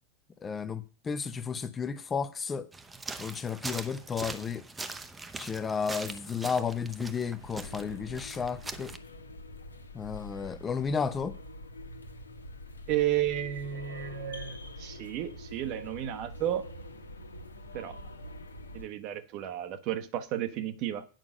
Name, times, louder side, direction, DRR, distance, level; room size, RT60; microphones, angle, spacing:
voice 1, 0.4-2.7 3.2-4.6 5.4-8.9 9.9-11.4, left 6 dB, 20° left, 0.8 m, -33 dB
sound 1, 2.7-9.0, right 3 dB, 10° right, 0.9 m, -42 dB
sound 2, 7.4-18.9, left 1 dB, 75° left, 1.5 m, -45 dB
voice 2, 12.9-16.7 17.7-18.0 18.7-21.0, right 12 dB, 40° right, 1.1 m, -32 dB
9.1 x 6.0 x 6.6 m
figure-of-eight pair, 90°, 0 cm